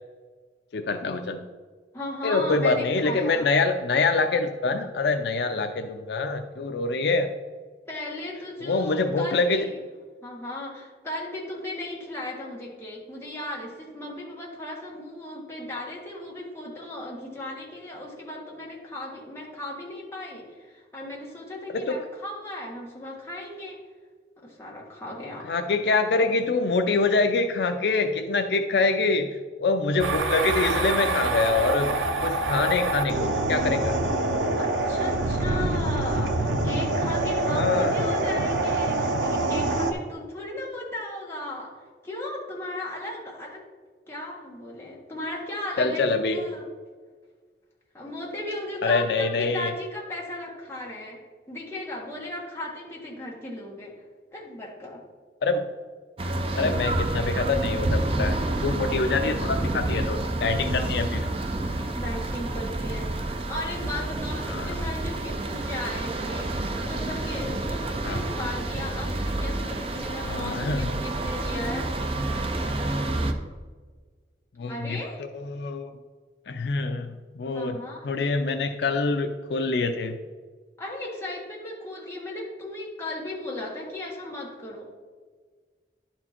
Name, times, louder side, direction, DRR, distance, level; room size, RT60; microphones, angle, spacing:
voice 1, 0.7-1.4 2.2-7.3 8.6-9.7 21.7-22.0 25.4-31.9 32.2-34.0 37.5-38.0 45.8-46.4 48.8-49.7 55.4-55.7 56.5-61.2 64.5-64.8 68.0-68.2 70.2-70.9 74.6-75.0 75.3-75.9 76.5-77.8 78.0-80.2, left 3 dB, 65° left, 6 dB, 0.4 m, -25 dB
voice 2, 1.9-3.5 7.9-9.7 10.2-23.8 24.4-25.5 34.5-41.7 42.0-43.6 44.1-46.7 47.9-51.2 51.5-53.9 54.3-55.0 60.7-61.3 61.9-71.9 74.7-75.2 77.5-78.1 80.8-84.9, left 1 dB, 15° left, -4 dB, 1.5 m, -36 dB
sound 1, 30.0-39.9, right 2 dB, 90° right, 0.8 m, -25 dB
sound 2, 56.2-73.3, right 2 dB, 30° right, 0.5 m, -29 dB
11.0 x 4.4 x 4.3 m, 1.5 s
head